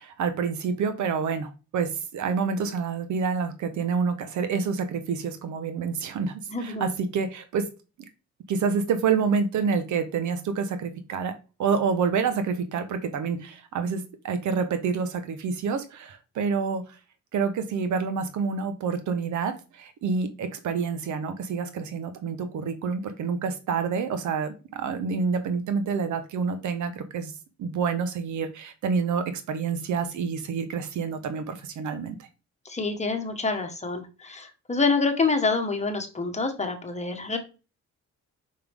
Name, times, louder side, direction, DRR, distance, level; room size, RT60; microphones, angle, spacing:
voice 1, 0.0-7.7 8.5-11.3 11.6-17.0 17.3-27.3 27.6-32.2, right 5 dB, 75° right, 9 dB, 1.1 m, -28 dB
voice 2, 6.5-6.9 32.6-37.4, left 4 dB, 20° left, 5 dB, 1.5 m, -27 dB
5.5 x 5.2 x 3.6 m, 0.31 s
cardioid pair, 90°, 30 cm